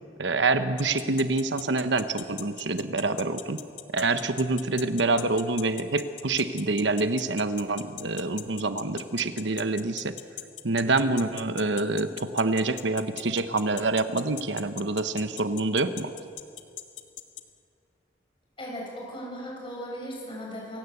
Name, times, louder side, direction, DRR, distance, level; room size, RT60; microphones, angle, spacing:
voice 1, 0.2-3.6 3.9-10.2 10.6-16.1, right 3 dB, 70° right, 10 dB, 1.0 m, -26 dB
sound 1, 0.8-17.4, left 13 dB, 80° left, 1.5 m, -39 dB
voice 2, 18.6-20.8, equal, 30° left, -2 dB, 7.7 m, -37 dB
28.0 x 17.0 x 8.2 m, 2.4 s
head